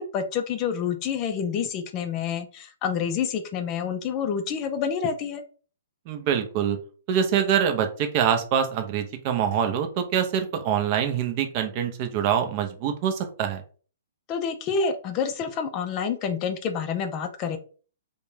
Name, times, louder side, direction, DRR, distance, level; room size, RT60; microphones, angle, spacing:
voice 1, 0.0-5.4 14.3-17.6, left 6 dB, 30° left, 7 dB, 0.4 m, -28 dB
voice 2, 6.1-6.8 7.1-13.6, right 8 dB, 35° right, 6 dB, 0.5 m, -25 dB
2.5 x 2.1 x 3.1 m, 0.40 s
hypercardioid pair, 150°, 0 cm